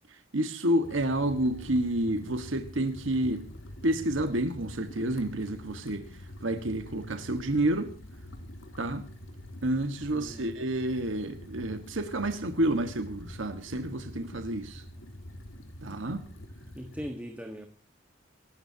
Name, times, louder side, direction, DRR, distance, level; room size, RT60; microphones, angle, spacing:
voice 1, 0.1-3.5 3.8-7.9 8.8-9.1 9.6-14.8 15.8-16.3, right 1 dB, 75° right, 1.7 m, -29 dB
sound 1, 0.8-17.1, left 1 dB, 85° left, 3.2 m, -46 dB
voice 2, 10.1-10.5 16.7-17.7, equal, 10° right, 1.5 m, -40 dB
27.5 x 13.5 x 2.9 m
head